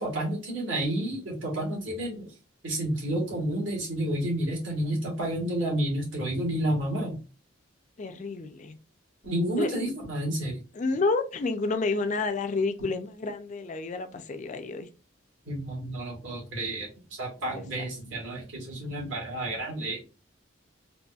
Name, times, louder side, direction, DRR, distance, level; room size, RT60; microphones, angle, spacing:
voice 1, 0.0-2.3 2.6-7.2 9.2-10.6 15.5-16.9 17.2-20.0, right 1 dB, 70° right, -3 dB, 1.7 m, -30 dB
voice 2, 8.0-8.8 9.6-9.8 10.7-14.9 17.5-17.9, left 3 dB, 40° left, 8 dB, 0.4 m, -30 dB
4.0 x 2.6 x 2.3 m, 0.33 s
head